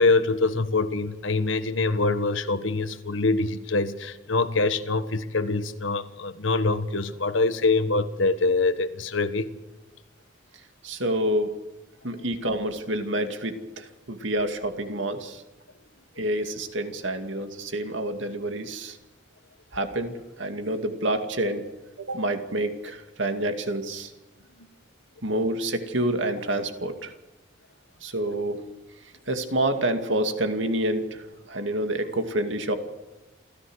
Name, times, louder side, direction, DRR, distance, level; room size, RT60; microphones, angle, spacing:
voice 1, 0.0-9.5 24.6-24.7, left 3 dB, 75° left, 11 dB, 1.4 m, -24 dB
voice 2, 10.8-11.5 12.0-15.4 16.2-19.0 19.7-21.7 22.0-24.1 25.2-27.1 28.0-28.6 29.3-32.8, right 1 dB, 70° right, 6 dB, 2.4 m, -28 dB
28.5 x 14.5 x 6.4 m, 1.1 s
head